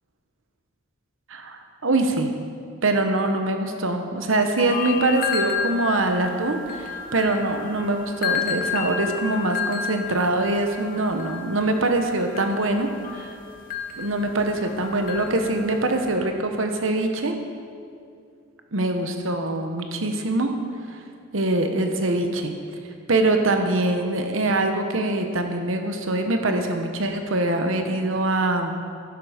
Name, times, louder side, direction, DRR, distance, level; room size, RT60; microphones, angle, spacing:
voice 1, 1.3-2.3 2.8-13.3 14.0-17.4 18.7-20.5 20.9-21.0 21.3-22.5 23.1-28.7, right 2 dB, 65° right, 5 dB, 1.1 m, -23 dB
sound 1, 4.6-16.1, left 7 dB, 40° left, 1.1 m, -32 dB
12.0 x 10.5 x 5.1 m, 2.3 s
head